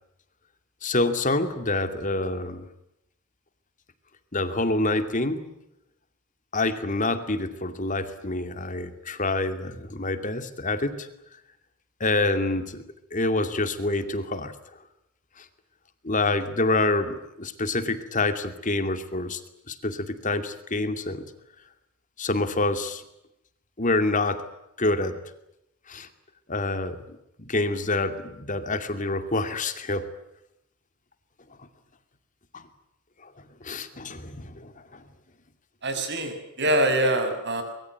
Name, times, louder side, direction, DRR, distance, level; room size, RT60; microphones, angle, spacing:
voice 1, 0.8-2.7 4.3-5.5 6.5-11.1 12.0-12.8 13.1-14.5 15.4-15.5 16.0-19.4 19.7-21.3 22.2-23.0 23.8-24.4 24.8-25.2 25.9-26.1 26.5-27.0 27.4-30.1 32.5-32.7 33.2-33.3 33.6-35.0, left 2 dB, 35° left, 9 dB, 2.5 m, -27 dB
voice 2, 35.8-37.6, right 1 dB, 50° right, 7 dB, 6.4 m, -24 dB
24.5 x 22.5 x 9.3 m, 0.86 s
head